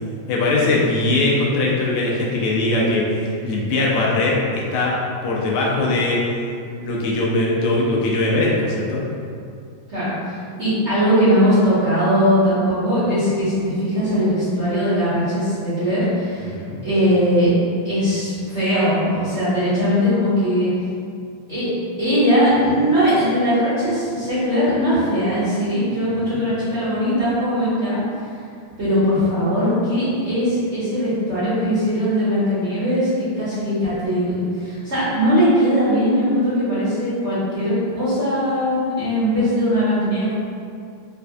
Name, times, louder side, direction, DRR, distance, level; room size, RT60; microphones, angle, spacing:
voice 1, 0.3-4.9 5.2-6.2 6.8-9.0 16.5-16.8 26.0-26.4, left 2 dB, 80° left, -4 dB, 1.4 m, -21 dB
voice 2, 9.9-16.5 16.8-17.5 17.8-20.7 21.5-21.6 22.0-28.0 28.8-40.3, equal, 45° right, -14 dB, 1.0 m, -20 dB
4.3 x 2.4 x 2.3 m, 2.4 s
omnidirectional pair, 2.4 m